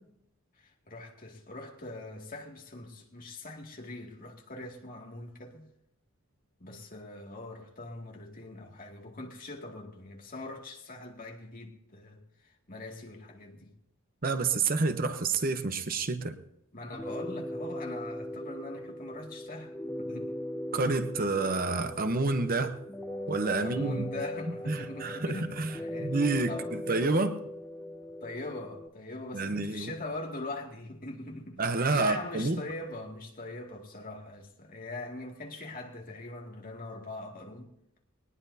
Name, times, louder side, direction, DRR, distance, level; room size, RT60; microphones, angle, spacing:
voice 1, 0.6-5.7 6.6-13.7 16.7-19.7 20.0-20.3 23.6-26.2 26.5-26.7 28.2-31.6 31.9-37.7, left 2 dB, 40° left, 2.3 m, -42 dB
voice 2, 14.2-16.3 20.7-22.7 23.3-24.1 24.7-26.5 26.9-27.4 29.3-29.9 31.6-32.6, right 3 dB, 45° right, 0.9 m, -29 dB
sound 1, 16.9-28.9, left 1 dB, 5° left, 0.7 m, -39 dB
21.0 x 19.5 x 2.8 m
head